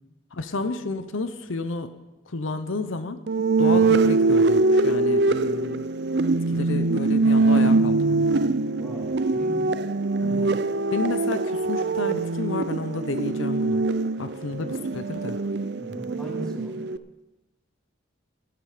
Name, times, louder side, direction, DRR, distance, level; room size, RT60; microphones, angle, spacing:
voice 1, 0.3-1.9 2.3-3.2 3.6-5.8 6.5-8.3 10.2-10.5 10.9-13.8 14.2-15.4, left 3 dB, 85° left, 10 dB, 0.8 m, -31 dB
sound 1, 3.3-17.0, right 3 dB, 55° right, 0.4 m, -23 dB
voice 2, 8.8-9.8 10.2-10.5 15.8-16.8, equal, 5° left, -3 dB, 3.0 m, -38 dB
13.0 x 12.5 x 5.1 m, 1.1 s
head